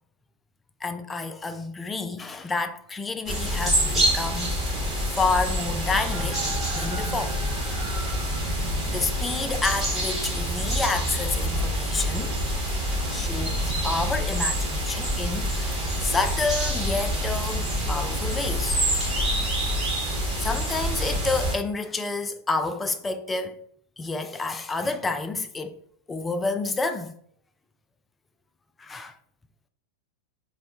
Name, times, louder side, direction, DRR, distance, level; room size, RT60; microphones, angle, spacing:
voice 1, 0.8-4.8 5.2-6.4 6.7-7.4 8.8-12.3 13.1-18.8 20.4-23.6 24.0-25.8 26.1-27.1 28.8-29.1, left 3 dB, 15° left, 0.3 m, -29 dB
sound 1, 3.3-21.6, equal, 10° right, 1.2 m, -27 dB
sound 2, 10.5-21.2, equal, 55° right, 0.9 m, -36 dB
4.0 x 2.2 x 2.7 m
figure-of-eight pair, 90°, 0 cm